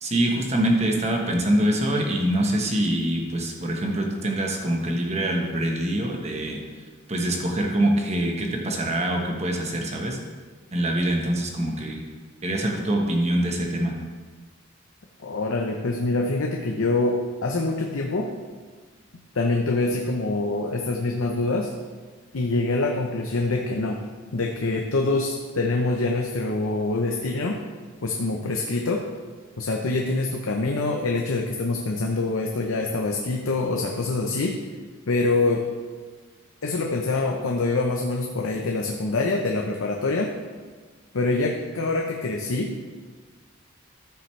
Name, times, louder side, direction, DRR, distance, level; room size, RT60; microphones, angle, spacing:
voice 1, 0.0-6.6 7.1-10.2 10.7-12.0 12.4-13.9, right 1 dB, 30° right, 1 dB, 1.2 m, -24 dB
voice 2, 15.2-18.3 19.3-21.7 22.3-27.6 28.0-29.1 29.6-34.6 35.1-35.7 36.6-40.4 41.1-42.8, left 2 dB, 90° left, 2 dB, 0.7 m, -25 dB
13.5 x 6.9 x 3.2 m, 1.5 s
head